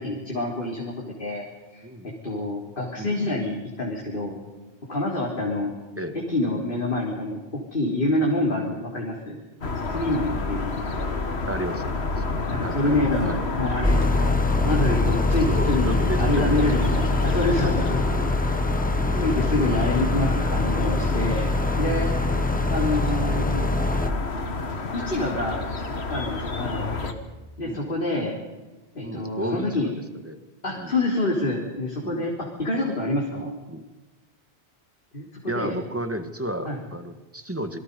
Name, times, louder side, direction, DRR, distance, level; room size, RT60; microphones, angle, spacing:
voice 1, 0.0-0.9 1.2-1.4 1.7-4.3 4.9-5.7 6.3-9.4 9.9-11.3 12.5-14.3 14.7-18.0 19.2-21.5 21.8-22.1 22.7-23.7 24.9-27.1 27.6-28.3 28.9-29.9 30.6-33.5 35.1-35.8 36.7-36.8, left 2 dB, 50° left, -2 dB, 3.9 m, -27 dB
voice 2, 1.8-2.1 3.0-3.4 6.0-6.2 11.5-13.4 15.5-16.8 17.2-17.4 18.0-18.4 19.0-19.4 23.3-23.8 27.6-27.9 29.0-29.9 30.2-30.4 30.8-30.9 32.0-32.3 33.3-33.9 35.5-37.8, right 1 dB, 10° right, 7 dB, 1.7 m, -33 dB
sound 1, 9.6-27.1, left 3 dB, 70° left, 2.1 m, -30 dB
sound 2, 13.8-24.1, left 2 dB, 10° left, 0.9 m, -24 dB
27.5 x 23.5 x 5.5 m, 1.2 s
omnidirectional pair, 1.1 m